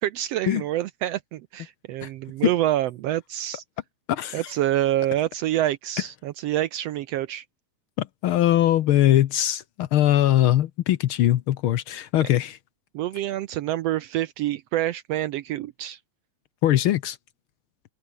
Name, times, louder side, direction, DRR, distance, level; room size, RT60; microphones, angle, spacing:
voice 1, 0.0-3.6 4.3-7.4 12.9-16.0, right 13 dB, 75° right, 1.5 m, -27 dB
voice 2, 4.1-4.4 8.0-12.6 16.6-17.2, left 13 dB, 85° left, 1.1 m, -21 dB
open air
omnidirectional pair, 3.5 m